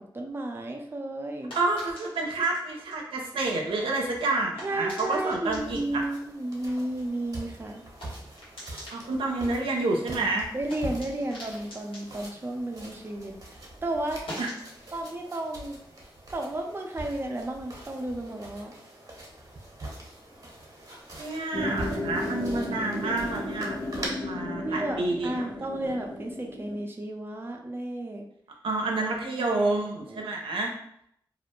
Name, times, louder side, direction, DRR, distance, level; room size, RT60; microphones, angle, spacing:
voice 1, 0.1-1.5 4.6-7.8 10.5-13.4 13.8-14.2 14.9-15.8 16.3-18.7 24.6-28.3 29.4-30.2, right 1 dB, 25° right, 1 dB, 0.5 m, -33 dB
sound 1, 0.7-13.4 13.7-17.0, equal, 80° left, 1.2 m, -48 dB
voice 2, 1.5-6.0 8.9-10.5 14.4-14.5 21.2-25.5 28.6-30.7, right 2 dB, 90° right, 0 dB, 0.5 m, -29 dB
sound 2, 5.4-24.1, right 1 dB, 45° right, 0.9 m, -43 dB
sound 3, 21.5-26.8, left 1 dB, 60° left, 0.7 m, -34 dB
2.4 x 2.1 x 3.0 m, 0.71 s
cardioid pair, 50°, 9 cm